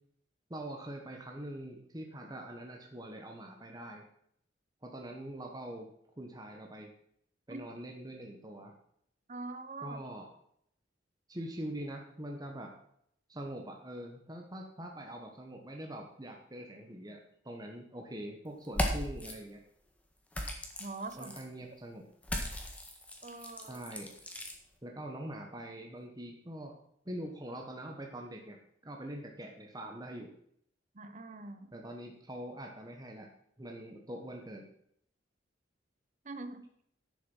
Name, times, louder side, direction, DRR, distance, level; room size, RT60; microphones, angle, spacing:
voice 1, 0.5-4.1 4.8-5.9 6.2-6.9 7.5-8.7 9.8-10.3 11.3-12.7 13.3-19.6 21.2-22.1 23.6-24.1 24.8-26.8 27.0-30.3 31.7-33.3 33.6-34.7, right 1 dB, 20° right, 1 dB, 1.2 m, -43 dB
voice 2, 9.3-10.0 20.8-21.3 23.2-23.8 30.9-31.8 36.2-36.6, right 3 dB, 40° right, 10 dB, 0.8 m, -43 dB
sound 1, 18.6-19.3 20.3-21.4 22.2-24.5, equal, 5° left, 1.5 m, -37 dB
10.5 x 7.1 x 5.5 m, 0.69 s
head